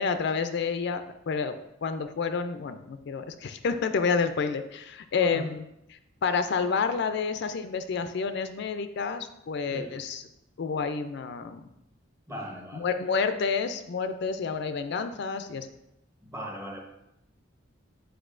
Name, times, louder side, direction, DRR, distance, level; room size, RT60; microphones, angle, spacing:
voice 1, 0.0-5.7 5.9-10.2 10.6-11.6 12.8-15.7, left 5 dB, 55° left, 9 dB, 0.4 m, -29 dB
voice 2, 5.1-5.5 9.7-9.9 12.3-12.9 16.2-16.8, equal, 15° right, 1 dB, 0.9 m, -38 dB
8.0 x 4.8 x 2.5 m, 0.85 s
head